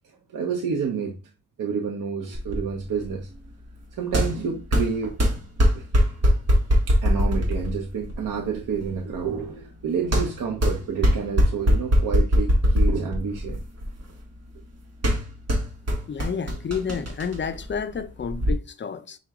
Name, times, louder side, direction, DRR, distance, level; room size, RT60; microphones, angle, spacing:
voice 1, 0.3-1.2 1.6-3.3 3.9-5.2 5.7-6.1 6.9-13.6, right 6 dB, 65° right, 0.8 m, -29 dB
sound 1, 2.3-18.5, equal, 45° right, 1.4 m, -23 dB
voice 2, 16.1-19.2, left 6 dB, 35° left, 0.4 m, -30 dB
5.7 x 2.2 x 3.5 m
cardioid pair, 75°, 35 cm